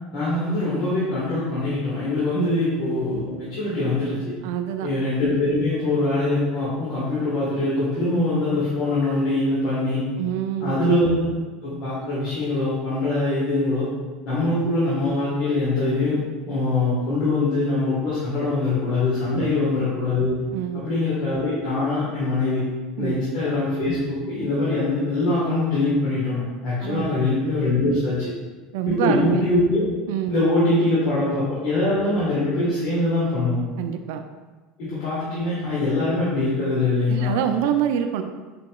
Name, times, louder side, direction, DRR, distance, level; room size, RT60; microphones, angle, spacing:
voice 1, 0.1-4.3 4.8-10.0 10.6-11.3 11.6-13.9 14.3-16.2 16.5-20.3 20.7-22.6 23.0-28.3 28.8-29.8 30.3-33.6 34.8-37.3, left 2 dB, 65° left, -9 dB, 1.3 m, -23 dB
voice 2, 4.4-4.9 10.2-10.8 19.3-19.5 20.5-20.8 23.0-23.2 26.8-27.2 28.7-29.4 30.1-30.3 33.8-34.2 37.1-38.2, right 9 dB, 75° right, 7 dB, 0.3 m, -26 dB
5.1 x 2.8 x 2.3 m, 1.3 s
supercardioid pair, 110°, 0 cm